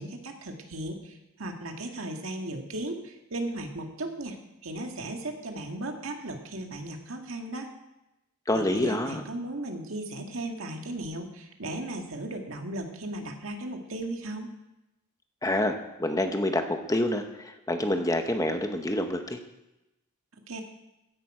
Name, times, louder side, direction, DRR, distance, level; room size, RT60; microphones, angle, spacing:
voice 1, 0.0-4.4 4.6-7.7 8.5-14.5 20.5-20.6, right 1 dB, 65° right, 3 dB, 1.9 m, -36 dB
voice 2, 8.5-9.2 15.4-19.4, left 1 dB, 15° left, 6 dB, 0.9 m, -27 dB
15.5 x 10.5 x 4.9 m, 0.95 s
head